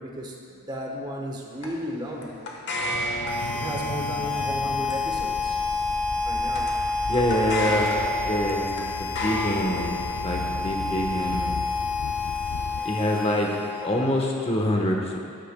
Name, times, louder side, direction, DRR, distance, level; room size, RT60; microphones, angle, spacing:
voice 1, 0.0-2.4 3.5-5.6 6.2-6.7, equal, 20° right, 0 dB, 1.0 m, -34 dB
sound 1, 1.6-14.2, left 1 dB, 50° left, 1.2 m, -35 dB
sound 2, 2.8-12.8, left 4 dB, 70° left, 0.4 m, -37 dB
Harmonica, 3.2-14.3, left 3 dB, 5° left, 0.7 m, -29 dB
voice 2, 7.1-7.9 8.3-9.9 10.2-11.6 12.8-13.5 13.8-15.2, left 1 dB, 25° left, 1 dB, 1.0 m, -25 dB
13.0 x 10.0 x 2.2 m, 2.7 s
head